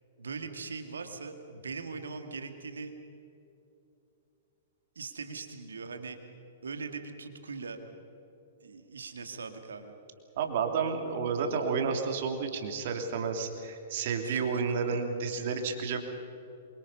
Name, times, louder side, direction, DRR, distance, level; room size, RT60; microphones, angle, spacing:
voice 1, 0.2-2.9 5.0-6.2 6.6-7.8 8.6-9.9 14.2-14.6 14.9-15.0, right 4 dB, 70° right, 7 dB, 2.3 m, -40 dB
voice 2, 10.4-16.0, right 5 dB, 50° right, 4 dB, 3.1 m, -31 dB
27.0 x 25.0 x 5.6 m, 2.9 s
figure-of-eight pair, 105°, 0 cm